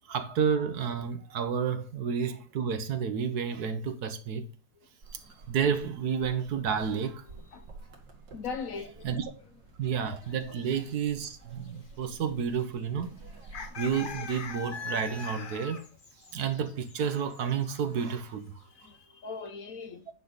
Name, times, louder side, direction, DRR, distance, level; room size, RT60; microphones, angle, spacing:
voice 1, 0.1-4.5 5.5-7.2 9.0-9.2 9.8-13.3 13.8-15.8 16.3-18.5, right 7 dB, 65° right, 1.4 m, -30 dB
sound 1, 5.0-15.5, right 3 dB, 85° right, 2.3 m, -51 dB
voice 2, 7.3-7.7 8.3-9.0 18.6-20.1, left 5 dB, 60° left, 1.0 m, -40 dB
sound 2, 10.2-10.9 11.1-11.3 11.6-12.2 12.5-12.6 13.4-17.8 18.1-18.3 18.7-18.9, left 5 dB, 45° left, 0.7 m, -42 dB
9.2 x 5.0 x 4.0 m
omnidirectional pair, 1.8 m